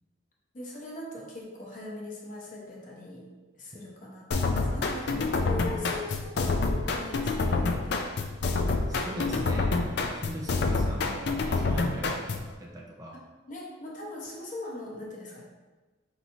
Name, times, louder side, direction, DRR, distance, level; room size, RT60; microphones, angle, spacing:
voice 1, 0.5-3.3 3.5-8.1 8.9-9.6 13.1-15.4, left 2 dB, 40° left, -2 dB, 0.8 m, -41 dB
sound 1, 4.3-12.5, left 3 dB, 60° left, 0.4 m, -28 dB
voice 2, 8.9-13.2, right 1 dB, 20° right, -2 dB, 0.4 m, -39 dB
5.4 x 3.0 x 2.7 m, 1.2 s
head